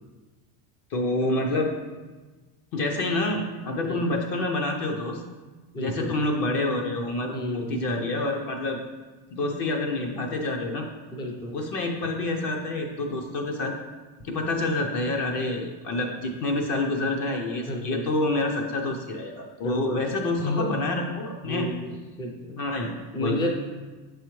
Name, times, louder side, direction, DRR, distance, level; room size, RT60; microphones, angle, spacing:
voice 1, 0.9-1.7 2.7-5.2 5.8-8.8 9.3-10.9 11.5-13.7 14.2-21.7 22.6-23.4, left 2 dB, 45° left, 2 dB, 0.7 m, -27 dB
voice 2, 5.7-6.2 7.3-7.9 11.1-11.6 17.7-18.0 19.6-20.0 20.4-20.7 21.4-22.6 23.1-23.5, left 1 dB, 10° left, 1 dB, 0.3 m, -31 dB
6.7 x 4.8 x 3.1 m, 1.3 s
cardioid pair, 140°, 48 cm